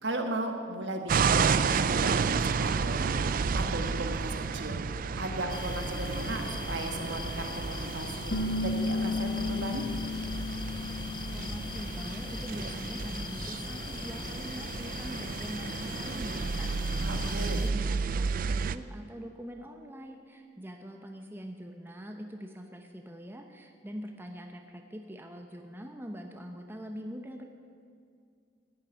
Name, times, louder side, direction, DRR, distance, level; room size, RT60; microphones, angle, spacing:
voice 1, 0.0-4.8 5.2-8.3 8.6-9.9 17.0-17.6, right 1 dB, 70° right, 4 dB, 1.6 m, -36 dB
sound 1, 1.1-18.8, right 5 dB, 50° right, 0.4 m, -32 dB
sound 2, 5.5-17.7, left 3 dB, 25° left, 0.5 m, -40 dB
sound 3, 8.3-13.7, left 3 dB, 70° left, 1.5 m, -35 dB
voice 2, 11.3-27.5, equal, 10° right, 3 dB, 0.8 m, -43 dB
14.0 x 7.3 x 9.5 m, 2.3 s
head